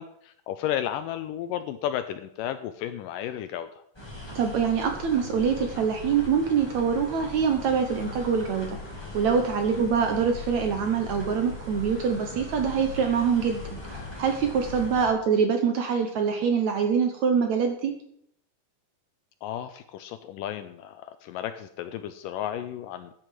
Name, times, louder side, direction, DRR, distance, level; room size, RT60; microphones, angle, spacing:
voice 1, 0.0-3.7 9.7-9.9 19.4-23.1, left 11 dB, 80° left, 10 dB, 2.0 m, -33 dB
sound 1, 3.9-15.1, left 3 dB, 5° left, 3.4 m, -39 dB
voice 2, 4.4-8.8 9.1-13.8 14.2-17.9, right 6 dB, 65° right, 5 dB, 1.9 m, -24 dB
10.5 x 7.8 x 7.5 m, 0.70 s
omnidirectional pair, 4.3 m